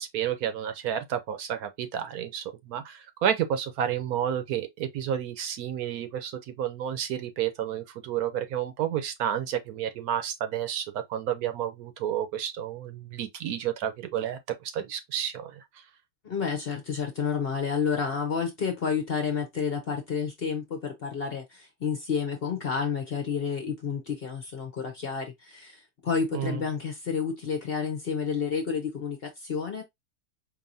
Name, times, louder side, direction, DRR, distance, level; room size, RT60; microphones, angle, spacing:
voice 1, 0.0-14.4 14.7-15.5 26.3-26.6, right 10 dB, 70° right, 1.1 m, -31 dB
voice 2, 16.2-29.8, left 6 dB, 50° left, 0.8 m, -30 dB
4.7 x 2.8 x 2.6 m
omnidirectional pair, 1.7 m